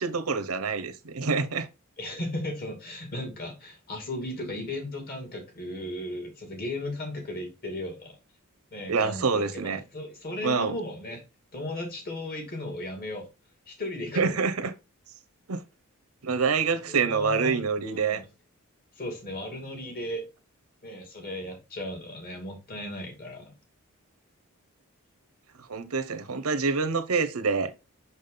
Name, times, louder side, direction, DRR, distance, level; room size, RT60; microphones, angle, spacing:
voice 1, 0.0-1.7 8.9-9.8 10.4-10.8 14.1-14.7 15.5-15.6 16.2-18.2 25.7-27.7, right 5 dB, 85° right, 0.9 m, -26 dB
voice 2, 2.0-8.2 8.7-11.2 11.5-13.3 13.7-14.3 16.7-18.2 19.0-20.2 20.8-23.5, left 1 dB, 45° left, 2.7 m, -36 dB
6.2 x 5.5 x 3.9 m
head